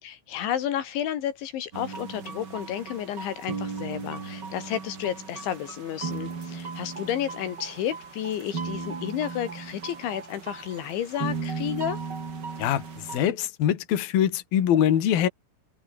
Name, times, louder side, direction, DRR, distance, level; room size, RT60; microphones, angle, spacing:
voice 1, 0.0-12.0, left 10 dB, 75° left, 4.4 m, -31 dB
sound 1, 1.7-13.3, right 4 dB, 30° right, 2.6 m, -36 dB
voice 2, 12.6-15.3, left 10 dB, 55° left, 3.9 m, -23 dB
omnidirectional pair, 5.5 m